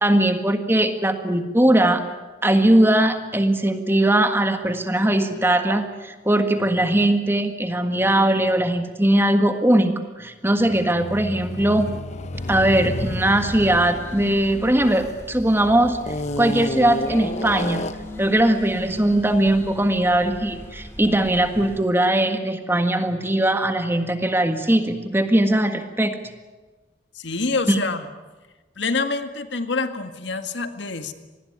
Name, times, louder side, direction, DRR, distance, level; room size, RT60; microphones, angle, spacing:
voice 1, 0.0-2.0 2.4-11.9 12.5-17.8 18.2-26.2 27.7-27.8, right 1 dB, 10° right, 7 dB, 1.6 m, -20 dB
sound 1, 10.6-15.4 16.0-18.2, left 2 dB, 35° left, 0.8 m, -31 dB
sound 2, 12.3-21.8, left 1 dB, 15° left, 4.0 m, -38 dB
voice 2, 27.2-28.1 28.8-31.1, left 3 dB, 70° left, 8 dB, 1.9 m, -26 dB
26.0 x 20.0 x 9.5 m, 1.3 s
head